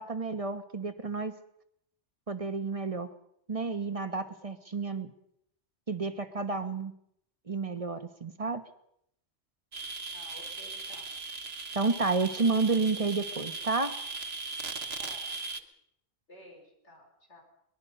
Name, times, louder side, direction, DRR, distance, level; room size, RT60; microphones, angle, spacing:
voice 1, 0.0-1.4 2.3-3.1 3.5-5.1 5.9-6.9 7.5-8.6 11.7-13.9, right 4 dB, 30° right, 8 dB, 1.3 m, -30 dB
sound 1, 9.7-15.6, right 3 dB, 65° right, 1.6 m, -38 dB
voice 2, 10.1-11.1 14.8-15.3 16.3-17.4, left 1 dB, 90° left, 2 dB, 5.1 m, -53 dB
23.0 x 20.5 x 5.5 m, 0.74 s
omnidirectional pair, 1.1 m